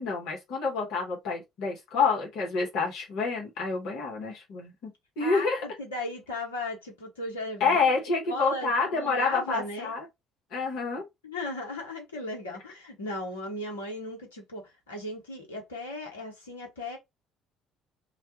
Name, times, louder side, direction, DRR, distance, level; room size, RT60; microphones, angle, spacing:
voice 1, 0.0-4.9 5.2-5.6 7.6-10.0 10.5-11.0, left 4 dB, 65° left, 1.1 m, -28 dB
voice 2, 5.2-7.9 8.3-9.9 11.2-17.0, left 2 dB, 85° left, 1.0 m, -36 dB
2.3 x 2.2 x 2.9 m
hypercardioid pair, 55°, 0 cm